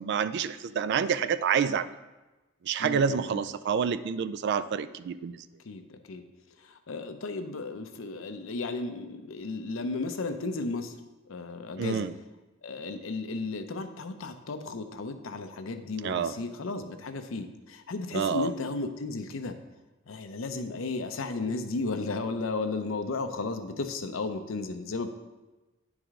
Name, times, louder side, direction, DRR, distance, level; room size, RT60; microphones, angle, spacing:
voice 1, 0.0-2.0 2.6-5.4 11.8-12.1 16.0-16.3 18.1-18.5, right 7 dB, 60° right, 14 dB, 0.3 m, -28 dB
voice 2, 2.8-3.4 5.6-6.2 6.6-10.9 11.3-12.1 12.6-19.6 20.1-25.1, left 3 dB, 80° left, 8 dB, 0.6 m, -34 dB
10.0 x 4.8 x 3.6 m, 1.1 s
head